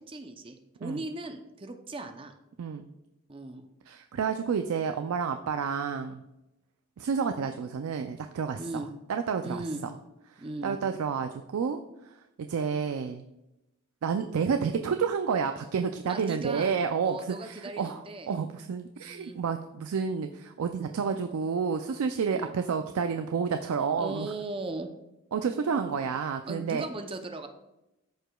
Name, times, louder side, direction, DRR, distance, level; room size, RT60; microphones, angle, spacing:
voice 1, 0.1-2.4 3.3-3.6 8.6-8.9 9.4-9.8 10.4-10.8 16.1-16.8 17.0-18.3 19.0-19.4 22.3-22.5 24.0-24.9 26.5-27.5, right 2 dB, 25° right, 6 dB, 0.5 m, -38 dB
voice 2, 2.6-2.9 3.9-6.2 7.0-8.6 9.1-9.9 10.4-11.8 12.4-13.2 14.0-24.3 25.3-26.8, right 6 dB, 90° right, 7 dB, 0.4 m, -30 dB
13.5 x 4.9 x 2.3 m, 0.93 s
head